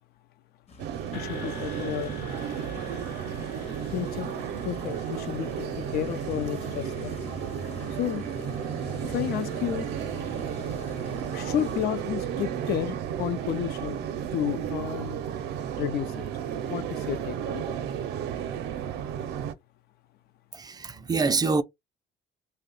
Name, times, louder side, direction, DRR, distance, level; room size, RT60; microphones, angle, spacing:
sound 1, 0.7-11.9, left 3 dB, 40° left, 0.8 m, -44 dB
sound 2, 0.8-19.5, right 9 dB, 80° right, 0.5 m, -33 dB
sound 3, 1.1-7.5, left 6 dB, 85° left, 1.0 m, -47 dB
voice 1, 1.1-2.2 3.9-4.3 4.6-7.2 7.9-8.3 9.0-9.9 11.3-15.2 15.8-16.3 16.7-17.8, left 11 dB, 70° left, 0.5 m, -32 dB
voice 2, 20.5-21.6, right 4 dB, 25° right, 0.3 m, -25 dB
2.7 x 2.1 x 3.9 m
cardioid pair, 110°, 17 cm